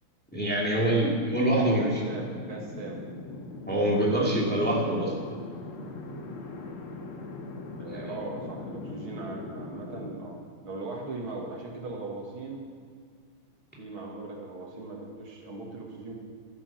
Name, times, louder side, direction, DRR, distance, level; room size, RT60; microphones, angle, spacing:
voice 1, 0.3-2.0 3.7-5.1 7.9-8.2, right 1 dB, 5° left, -4 dB, 2.4 m, -25 dB
sound 1, 0.7-10.2, left 3 dB, 85° left, 2.3 m, -40 dB
voice 2, 1.4-3.0 4.0-4.1 4.8-5.0 7.8-12.6 13.8-16.2, right 3 dB, 70° right, -1 dB, 2.8 m, -39 dB
12.5 x 10.5 x 7.4 m, 2.1 s
omnidirectional pair, 2.4 m